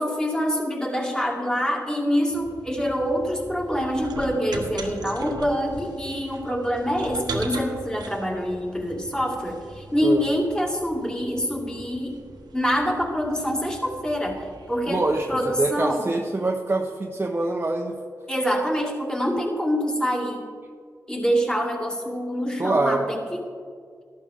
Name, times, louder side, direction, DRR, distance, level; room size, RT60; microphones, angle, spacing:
voice 1, 0.0-12.2 12.5-16.0 18.3-20.4 21.1-23.2, equal, 10° left, -1 dB, 2.3 m, -25 dB
sound 1, 2.3-15.7, right 3 dB, 85° right, 1.2 m, -40 dB
voice 2, 14.9-15.3 15.6-17.9 22.6-23.1, right 2 dB, 30° right, 1 dB, 0.9 m, -24 dB
13.5 x 12.0 x 3.7 m, 2.1 s
cardioid pair, 55°, 7 cm